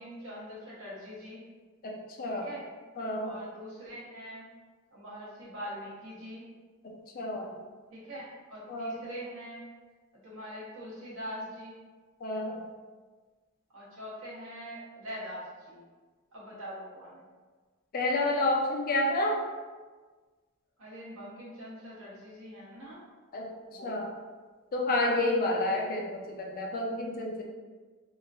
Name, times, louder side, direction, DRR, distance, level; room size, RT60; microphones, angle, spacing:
voice 1, 0.0-1.4 2.4-2.6 3.2-4.5 4.9-6.4 7.9-9.7 10.2-11.7 13.7-15.8 16.3-17.2 20.8-23.0 23.7-23.9, equal, 65° right, -7 dB, 1.0 m, -43 dB
voice 2, 1.8-2.5 3.0-3.4 6.8-7.5 8.7-9.0 12.2-12.6 17.9-19.4 23.3-23.5 23.8-24.1 24.7-27.4, left 2 dB, 45° left, 0 dB, 0.4 m, -30 dB
2.9 x 2.4 x 2.3 m, 1.4 s
head